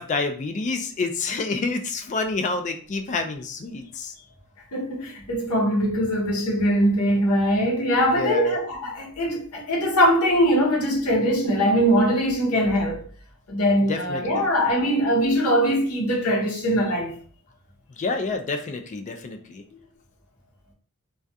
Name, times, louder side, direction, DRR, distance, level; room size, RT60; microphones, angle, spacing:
voice 1, 0.0-4.1 8.1-8.6 13.9-14.5 18.0-19.6, left 3 dB, 35° left, 0.3 m, -28 dB
voice 2, 4.7-13.0 13.5-17.1, equal, 75° left, 0.8 m, -22 dB
2.3 x 2.2 x 2.6 m
head